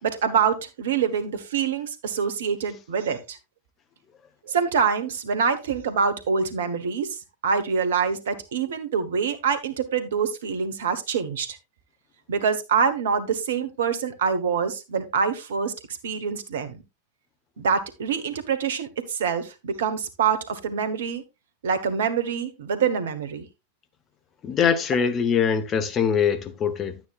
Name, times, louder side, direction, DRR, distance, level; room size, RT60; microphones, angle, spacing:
voice 1, 0.0-3.4 4.5-7.2 7.4-11.6 12.3-15.7 16.0-16.8 17.6-21.2 21.6-23.4, right 6 dB, 60° right, 1.4 m, -25 dB
voice 2, 24.4-27.0, left 7 dB, 30° left, 1.2 m, -23 dB
11.5 x 9.2 x 2.5 m
figure-of-eight pair, 90°, 0 cm